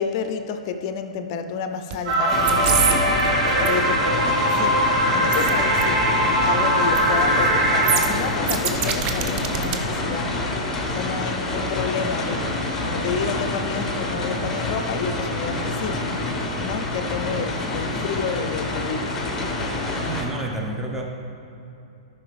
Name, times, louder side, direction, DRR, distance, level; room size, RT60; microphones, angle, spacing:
voice 1, 0.0-6.0 6.4-10.4 10.9-12.5 12.8-16.1 16.6-19.2, left 6 dB, 45° left, 8 dB, 0.6 m, -30 dB
sound 1, 1.9-2.1 2.4-2.9 3.2-3.7 5.3-5.5 5.8-5.9 6.8-7.1 7.4-7.5 7.8-9.8 10.1-10.2, right 8 dB, 30° right, 0.7 m, -24 dB
sound 2, 2.1-8.0, right 1 dB, 55° right, 1.7 m, -21 dB
sound 3, 2.3-20.2, left 2 dB, 15° left, 1.4 m, -27 dB
voice 2, 20.1-21.0, right 2 dB, 10° right, 0 dB, 1.0 m, -29 dB
13.5 x 5.7 x 3.4 m, 2.8 s
figure-of-eight pair, 110°, 4 cm